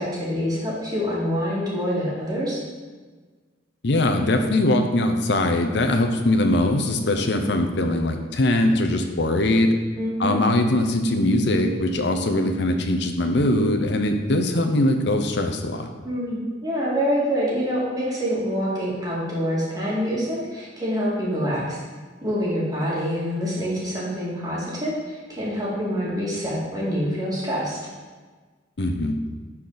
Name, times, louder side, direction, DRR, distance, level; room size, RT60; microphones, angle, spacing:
voice 1, 0.0-2.6 10.0-10.4 16.0-21.8 22.2-27.8, equal, 20° right, -6 dB, 2.3 m, -26 dB
voice 2, 3.8-9.7 10.2-15.9 28.8-29.2, left 1 dB, 65° left, 6 dB, 0.8 m, -21 dB
11.5 x 4.4 x 4.0 m, 1.4 s
head